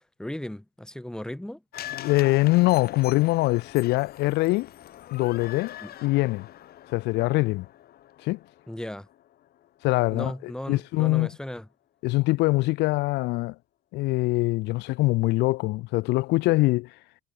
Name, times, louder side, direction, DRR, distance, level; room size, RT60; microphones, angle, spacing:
voice 1, 0.2-1.6 5.8-5.9 8.7-9.1 10.1-11.7, left 1 dB, 5° left, 3.0 m, -36 dB
sound 1, 1.7-10.0 10.3-10.4, left 12 dB, 65° left, 7.5 m, -43 dB
voice 2, 2.0-4.7 5.1-5.8 6.0-6.5 6.9-7.7 8.2-8.4 9.8-11.3 12.0-13.5 13.9-16.9, left 21 dB, 90° left, 0.8 m, -23 dB
cardioid pair, 110°, 17 cm